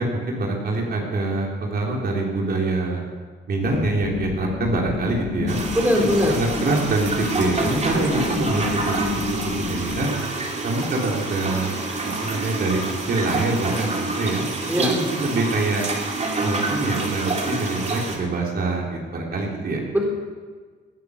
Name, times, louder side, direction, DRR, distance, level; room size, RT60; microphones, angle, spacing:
voice 1, 0.0-3.0 3.5-5.6 6.3-9.0 9.3-10.1 10.6-11.8 12.2-12.8 13.1-14.4 14.8-15.8 16.4-19.8, right 2 dB, 50° right, -1 dB, 3.6 m, -25 dB
sound 1, 3.6-10.1, left 8 dB, 60° left, 1.1 m, -31 dB
sound 2, 5.5-18.2, right 3 dB, 35° right, 2.5 m, -27 dB
voice 2, 5.7-6.4 14.7-14.9 19.9-20.0, equal, 10° right, 0 dB, 3.9 m, -20 dB
18.5 x 10.5 x 6.7 m, 1.5 s
cardioid pair, 90°, 20 cm